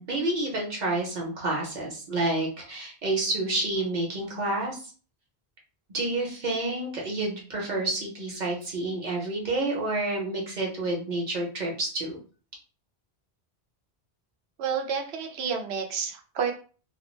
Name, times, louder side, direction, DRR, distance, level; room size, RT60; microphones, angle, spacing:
voice 1, 0.0-4.9 5.9-12.2, right 2 dB, 50° right, -2 dB, 0.9 m, -29 dB
voice 2, 14.6-16.5, right 6 dB, 80° right, 3 dB, 0.8 m, -30 dB
2.3 x 2.0 x 3.1 m, 0.39 s
omnidirectional pair, 1.1 m